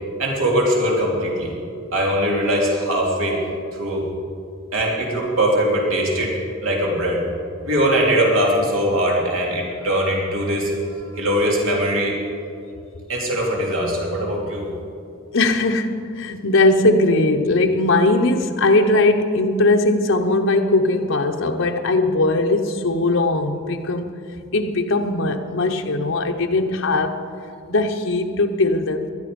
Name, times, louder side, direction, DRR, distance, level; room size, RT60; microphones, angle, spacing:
voice 1, 0.2-1.5 1.9-3.4 3.8-4.1 4.7-7.2 7.6-12.2 12.5-12.6 13.1-14.7, equal, 85° right, 3.1 m, -21 dB
voice 2, 15.3-24.2 24.5-27.3 27.7-29.1, left 2 dB, 70° left, 0.8 m, -19 dB
19.0 x 12.0 x 5.2 m
head